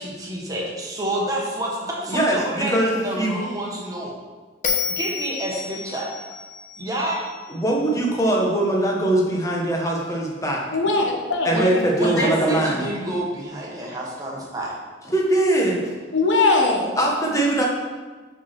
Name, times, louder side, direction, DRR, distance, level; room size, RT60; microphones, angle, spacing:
voice 1, 0.0-4.1 4.9-6.1 6.8-7.2 11.5-11.7 11.9-14.7, right 1 dB, 20° right, -3 dB, 1.5 m, -28 dB
voice 2, 2.1-2.9 3.2-3.3 7.5-10.6 11.4-12.8 15.1-15.8 17.0-17.7, right 1 dB, 15° left, -1 dB, 1.3 m, -21 dB
Bell, 4.6-7.9, left 6 dB, 45° left, 1.0 m, -30 dB
voice 3, 10.7-11.8 12.2-12.6 16.1-16.9, left 3 dB, 90° left, 1 dB, 1.3 m, -21 dB
6.0 x 6.0 x 6.0 m, 1.4 s
head